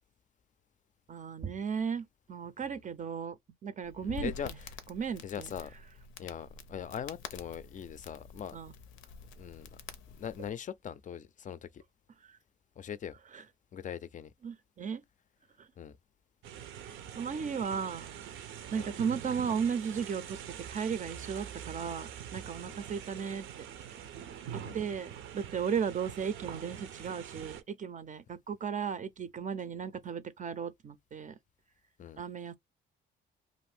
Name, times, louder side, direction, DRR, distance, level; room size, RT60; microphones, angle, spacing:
voice 1, 1.1-3.4 3.6-4.6 4.9-5.5 8.5-8.7 12.2-12.4 13.3-13.4 14.4-15.0 15.6-15.7 17.2-18.1 18.7-23.7 24.5-31.3 32.2-32.6, right 6 dB, 40° right, 0.5 m, -35 dB
Crackle, 3.8-10.5, left 6 dB, 90° left, 0.5 m, -47 dB
voice 2, 4.0-4.5 5.2-5.7 6.2-8.6 9.4-9.7 10.2-11.8 12.8-13.2 13.7-14.3 15.8-16.0 18.7-18.9 22.6-22.8 24.6-24.8 32.0-32.2, left 8 dB, 40° left, 0.4 m, -41 dB
sound 1, 16.4-27.6, right 9 dB, 80° right, 0.6 m, -44 dB
2.6 x 2.5 x 3.3 m
cardioid pair, 90°, 20 cm